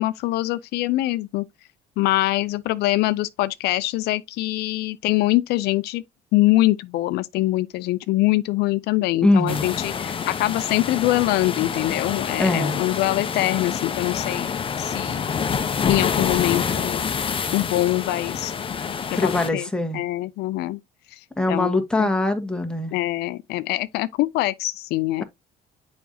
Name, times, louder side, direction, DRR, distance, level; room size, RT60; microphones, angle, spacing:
voice 1, 0.0-1.4 2.0-6.0 6.3-14.5 14.8-15.2 15.9-17.0 17.5-18.5 19.1-20.8 21.5-22.1 22.9-25.2, left 17 dB, 80° left, 0.5 m, -23 dB
voice 2, 9.2-9.7 12.4-12.8 19.2-20.0 21.4-22.9, left 2 dB, 5° left, 1.5 m, -22 dB
sound 1, 9.5-19.5, left 6 dB, 30° left, 0.8 m, -27 dB
7.0 x 5.2 x 2.7 m
cardioid pair, 110°, 17 cm